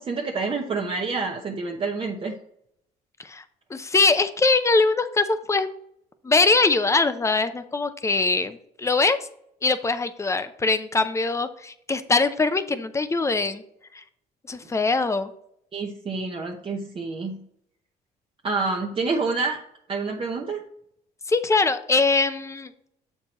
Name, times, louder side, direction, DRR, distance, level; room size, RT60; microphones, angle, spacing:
voice 1, 0.0-2.3 15.7-17.4 18.4-19.6 19.9-20.6, right 4 dB, 35° right, 1 dB, 0.8 m, -28 dB
voice 2, 3.7-5.7 6.2-9.2 9.6-13.6 13.9-14.0 14.5-15.3 21.3-22.7, left 3 dB, 15° left, 11 dB, 0.6 m, -22 dB
7.3 x 4.6 x 4.2 m, 0.71 s
cardioid pair, 110°, 17 cm